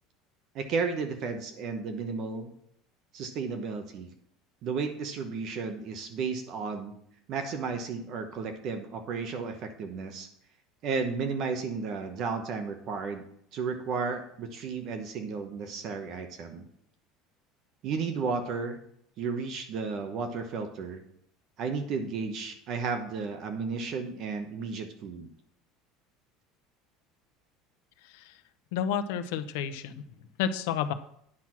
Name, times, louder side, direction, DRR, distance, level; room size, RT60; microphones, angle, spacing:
voice 1, 0.5-2.5 3.1-4.1 4.6-6.9 7.3-10.3 10.8-13.2 13.5-16.6 17.8-18.8 19.2-21.0 21.6-25.3, right 5 dB, 40° right, 7 dB, 1.0 m, -33 dB
voice 2, 28.7-29.9 30.4-30.9, left 8 dB, 75° left, 10 dB, 0.8 m, -30 dB
9.9 x 6.1 x 6.0 m, 0.70 s
cardioid pair, 175°, 0 cm